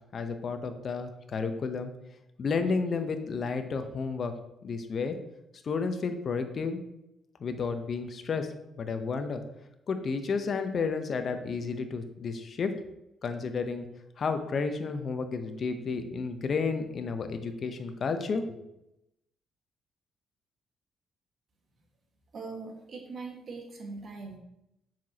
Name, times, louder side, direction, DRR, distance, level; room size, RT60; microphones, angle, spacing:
voice 1, 0.1-1.9 2.4-4.3 4.6-5.2 5.6-6.8 7.4-8.5 8.8-9.4 9.9-12.7 13.2-13.9 14.2-18.6, left 4 dB, 50° left, 8 dB, 0.8 m, -31 dB
voice 2, 22.3-24.4, right 4 dB, 50° right, 2 dB, 1.6 m, -41 dB
7.3 x 6.0 x 2.9 m, 0.86 s
cardioid pair, 90°, 0 cm